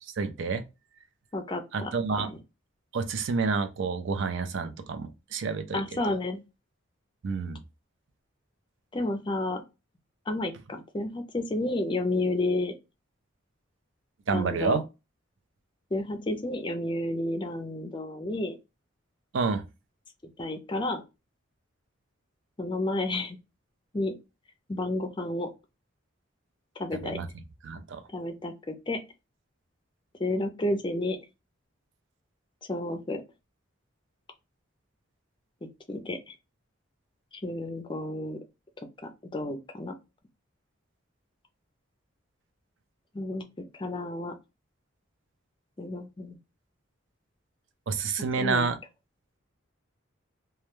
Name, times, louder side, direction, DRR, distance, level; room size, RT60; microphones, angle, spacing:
voice 1, 0.2-0.6 1.7-2.3 2.9-5.8 7.2-7.6 14.3-14.8 19.3-19.6 26.9-27.3 27.6-28.0 47.9-48.8, right 4 dB, 65° right, 0.4 m, -29 dB
voice 2, 1.3-1.9 2.2-2.3 5.7-6.4 8.9-9.6 10.3-12.7 14.3-14.8 15.9-18.6 20.4-21.0 22.6-23.4 23.9-24.2 24.7-25.5 26.8-27.2 28.1-29.0 30.2-31.2 32.7-33.2 35.9-36.3 37.4-38.4 39.3-39.9 43.1-43.4 43.8-44.3 45.8-46.4 48.4-48.7, left 2 dB, 25° left, 0.4 m, -31 dB
2.2 x 2.1 x 3.0 m
head